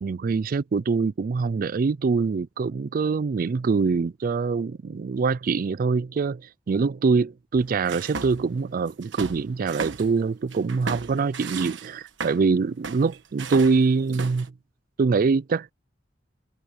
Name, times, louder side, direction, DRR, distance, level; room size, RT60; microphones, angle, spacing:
voice 1, 0.0-14.5 15.0-15.7, right 4 dB, 50° right, 0.4 m, -24 dB
sound 1, 7.5-8.5 8.9-10.1 10.5-12.5 12.8-14.5, right 4 dB, 75° right, 1.3 m, -35 dB
head